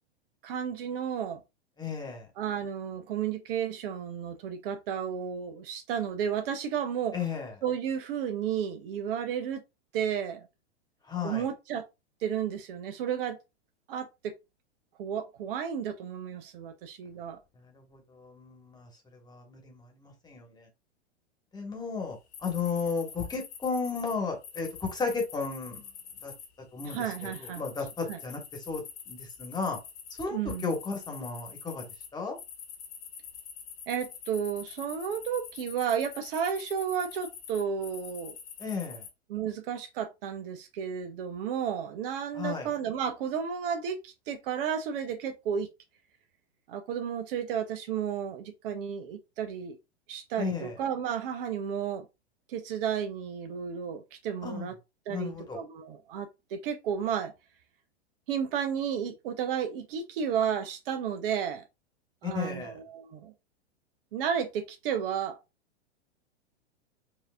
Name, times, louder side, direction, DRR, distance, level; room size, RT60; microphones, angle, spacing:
voice 1, 0.4-1.4 2.4-7.2 7.6-9.6 9.9-10.5 11.2-11.9 12.2-13.4 13.9-14.3 15.0-17.4 26.8-27.6 28.1-28.2 30.3-30.7 33.9-38.3 39.3-45.7 46.7-49.8 50.1-52.0 52.5-54.7 55.1-57.3 58.3-61.6 62.2-63.3 64.1-65.4, right 8 dB, 55° right, 0.8 m, -32 dB
voice 2, 1.8-2.3 7.1-7.5 11.1-11.5 17.6-20.7 21.5-25.8 26.2-26.3 26.7-27.0 27.4-29.8 30.2-30.4 30.6-31.8 32.1-32.4 38.6-39.0 42.3-42.7 50.4-50.7 54.4-54.7 55.1-55.6 62.2-62.8, left 5 dB, 10° left, 1.3 m, -34 dB
sound 1, 22.3-24.1 24.4-26.5 26.8-32.1 32.4-39.1, left 7 dB, 70° left, 1.5 m, -45 dB
4.6 x 2.7 x 2.4 m
hypercardioid pair, 110°, 34 cm